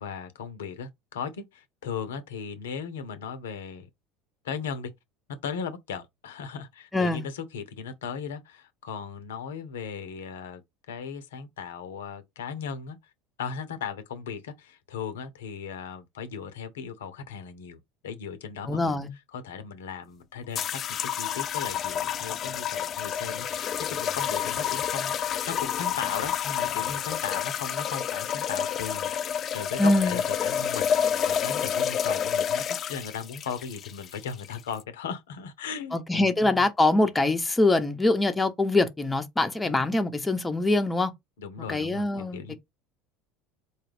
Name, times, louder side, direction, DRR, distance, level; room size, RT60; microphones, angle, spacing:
voice 1, 0.0-3.9 4.4-4.9 5.4-10.6 10.9-13.0 13.4-19.0 19.3-20.8 21.2-29.1 29.5-32.6 32.9-36.7 39.6-39.8 41.4-42.5, left 6 dB, 80° left, 0.6 m, -37 dB
voice 2, 6.9-7.2 18.6-19.1 29.8-30.2 35.9-41.1 41.7-42.4, left 2 dB, 15° left, 0.8 m, -24 dB
sound 1, 20.5-34.8, left 9 dB, 45° left, 0.3 m, -29 dB
4.2 x 2.3 x 3.3 m
hypercardioid pair, 75°, 0 cm